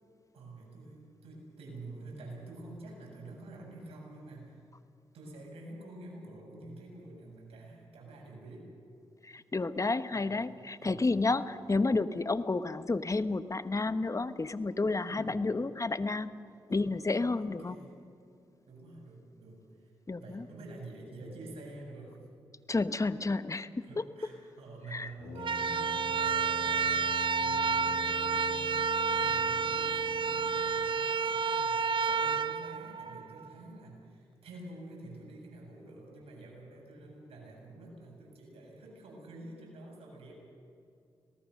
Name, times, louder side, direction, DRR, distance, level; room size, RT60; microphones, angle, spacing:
voice 1, 0.3-4.6 5.1-8.7 10.1-10.4 10.8-11.1 15.1-15.5 16.7-17.0 17.4-17.9 18.7-19.9 20.2-22.2 23.2-23.3 23.8-40.3, right 2 dB, 75° right, -1 dB, 7.6 m, -48 dB
voice 2, 9.2-16.3 16.7-17.8 20.1-20.4 22.7-23.7 24.9-25.1, left 3 dB, 30° left, 12 dB, 1.2 m, -31 dB
Brass instrument, 25.2-31.1, left 6 dB, 75° left, 1.6 m, -45 dB
sound 1, 25.4-33.5, right 6 dB, 55° right, 0.6 m, -30 dB
25.5 x 18.5 x 6.6 m, 2.5 s
supercardioid pair, 45°, 10 cm